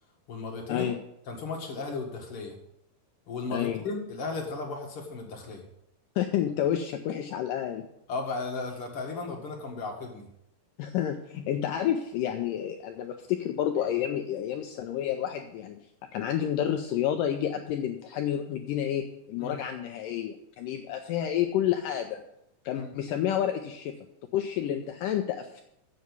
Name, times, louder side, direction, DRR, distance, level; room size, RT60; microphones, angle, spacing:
voice 1, 0.3-0.9 1.3-2.5 3.3-5.6 8.1-10.3 19.4-19.6 22.7-22.9, left 3 dB, 55° left, 1 dB, 1.6 m, -35 dB
voice 2, 3.5-3.8 6.2-7.9 10.8-15.9 16.1-22.2 22.7-24.0 24.3-25.6, left 10 dB, 90° left, 5 dB, 1.9 m, -30 dB
7.7 x 7.0 x 8.1 m, 0.78 s
omnidirectional pair, 4.5 m